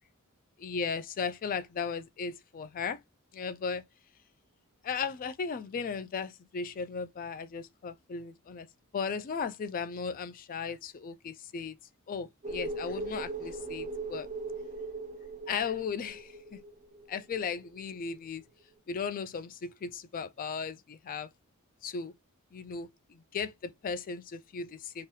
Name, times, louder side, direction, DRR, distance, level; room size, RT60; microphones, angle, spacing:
voice 1, 0.6-3.0 3.3-3.8 4.8-8.7 8.9-11.8 12.1-14.3 15.5-16.6 17.1-18.4 18.9-21.3 21.8-22.1 22.5-25.1, left 5 dB, 40° left, 0.3 m, -36 dB
sound 1, 12.4-17.7 17.9-18.0, right 2 dB, 35° right, 0.5 m, -39 dB
2.8 x 2.2 x 3.1 m
head